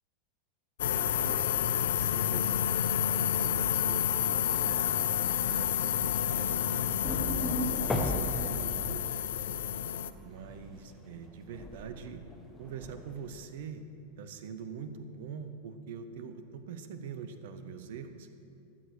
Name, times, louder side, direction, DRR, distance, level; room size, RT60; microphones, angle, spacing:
sound 1, 0.8-10.1, left 10 dB, 60° left, 0.4 m, -29 dB
voice 1, 0.9-4.9 5.5-7.5 7.7-9.0 10.2-12.2 12.6-13.8 14.2-18.3, right 6 dB, 55° right, 10 dB, 0.8 m, -44 dB
sound 2, 6.1-10.8 11.2-13.4, left 1 dB, 10° left, 1.3 m, -36 dB
13.0 x 6.8 x 6.4 m, 2.6 s
figure-of-eight pair, 90°, 0 cm